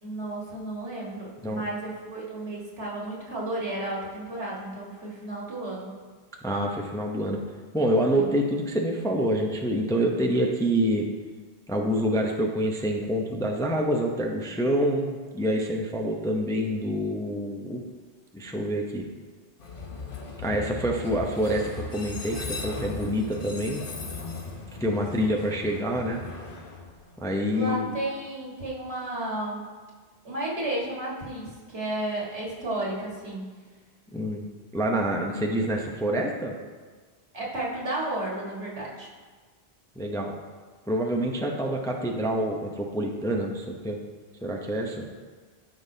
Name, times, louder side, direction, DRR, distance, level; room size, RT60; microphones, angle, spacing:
voice 1, 0.0-6.0 8.1-8.3 24.8-25.1 27.5-29.6 30.2-33.4 37.3-39.1, right 1 dB, 75° right, -4 dB, 2.0 m, -33 dB
voice 2, 6.4-7.4 7.7-11.0 11.7-17.8 18.3-19.0 20.4-23.8 24.8-26.2 27.2-28.0 34.1-34.4 34.7-36.5 40.0-40.3 40.9-44.0 44.4-45.0, equal, 5° left, 1 dB, 0.5 m, -27 dB
Train, 19.6-27.6, left 4 dB, 55° left, 1.1 m, -38 dB
13.0 x 5.5 x 2.7 m, 1.5 s
omnidirectional pair, 1.1 m